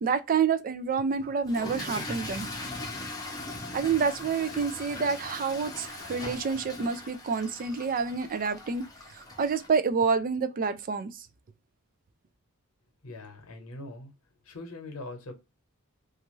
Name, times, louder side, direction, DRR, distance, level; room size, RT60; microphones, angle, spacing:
voice 1, 0.0-2.5 3.7-8.8 9.1-11.3, right 5 dB, 40° right, 0.4 m, -28 dB
Toilet flush / Fill (with liquid), 1.4-9.7, left 2 dB, 15° left, 0.6 m, -40 dB
voice 2, 13.0-14.1 14.4-15.3, left 2 dB, 75° left, 0.9 m, -42 dB
2.5 x 2.5 x 2.9 m
head